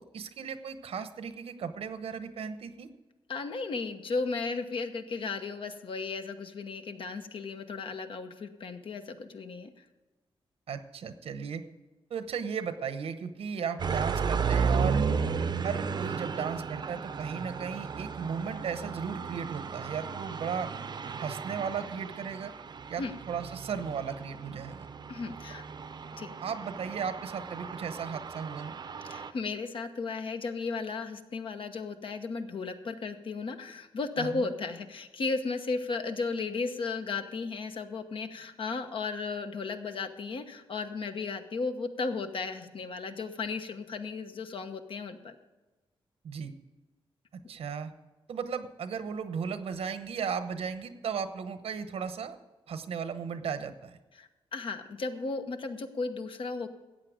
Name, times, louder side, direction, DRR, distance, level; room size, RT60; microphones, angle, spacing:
voice 1, 0.0-2.9 10.7-11.6 12.1-15.1 15.6-20.7 21.2-22.5 22.9-24.9 26.4-28.8 34.2-34.5 46.2-46.5 47.5-47.9 48.3-52.4 52.7-54.0, right 6 dB, 80° right, 10 dB, 0.9 m, -35 dB
voice 2, 3.3-9.8 23.0-23.1 25.1-25.6 26.2-26.3 29.0-45.4 54.2-56.7, left 4 dB, 60° left, 7 dB, 1.1 m, -35 dB
sound 1, 13.8-29.3, right 5 dB, 50° right, 0.6 m, -34 dB
14.0 x 8.6 x 5.0 m, 1.2 s
wide cardioid pair, 125°, 10 cm